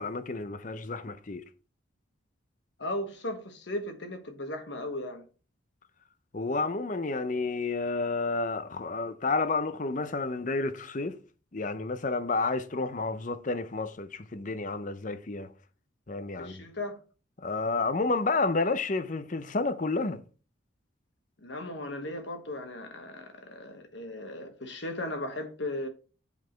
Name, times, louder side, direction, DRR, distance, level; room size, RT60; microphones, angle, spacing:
voice 1, 0.0-1.4 6.3-11.2 11.5-15.5 16.1-16.6 17.4-20.2, left 3 dB, 40° left, 0.6 m, -30 dB
voice 2, 2.8-5.2 16.4-17.0 21.4-25.9, left 1 dB, 60° left, 1.3 m, -36 dB
8.2 x 4.9 x 4.5 m
head